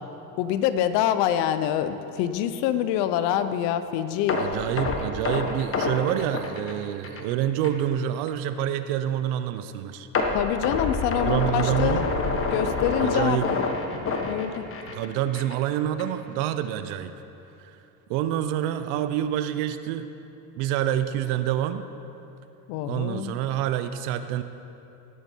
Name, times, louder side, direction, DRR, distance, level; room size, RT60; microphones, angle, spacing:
voice 1, 0.4-4.4 10.3-12.0 12.5-13.6 14.2-14.7 22.7-23.4, left 10 dB, 65° left, 11 dB, 0.9 m, -25 dB
sound 1, 4.3-7.3 7.6-7.8 8.3-8.4 10.1-15.1 15.3-15.6 16.0-16.1, left 3 dB, 30° left, 1.4 m, -27 dB
voice 2, 4.3-10.1 11.2-12.1 13.0-13.5 14.9-17.1 17.6-17.8 18.1-20.1 20.5-21.8 22.8-24.4, right 11 dB, 70° right, 11 dB, 0.9 m, -27 dB
18.5 x 8.1 x 4.6 m, 2.9 s
supercardioid pair, 100°, 46 cm